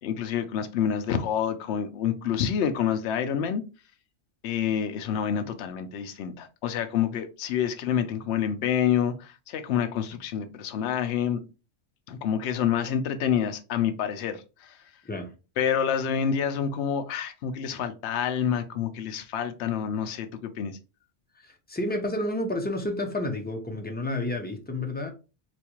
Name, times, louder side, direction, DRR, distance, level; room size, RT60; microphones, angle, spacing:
voice 1, 0.0-3.6 4.4-11.4 12.1-15.0 15.6-20.8, left 8 dB, 70° left, 0.8 m, -28 dB
voice 2, 21.4-25.1, left 1 dB, 15° left, 0.4 m, -30 dB
4.3 x 2.3 x 2.9 m
omnidirectional pair, 1.2 m